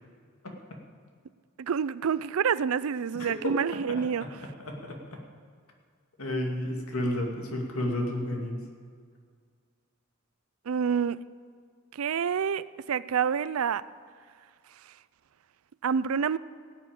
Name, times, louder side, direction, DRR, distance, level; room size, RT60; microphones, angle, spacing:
voice 1, 1.6-4.3 10.7-11.2 12.0-13.8 15.8-16.4, right 7 dB, 80° right, 18 dB, 0.4 m, -27 dB
voice 2, 3.2-3.5 4.2-5.2 6.2-8.6, left 1 dB, 85° left, 1 dB, 2.3 m, -32 dB
17.5 x 7.0 x 8.9 m, 2.1 s
head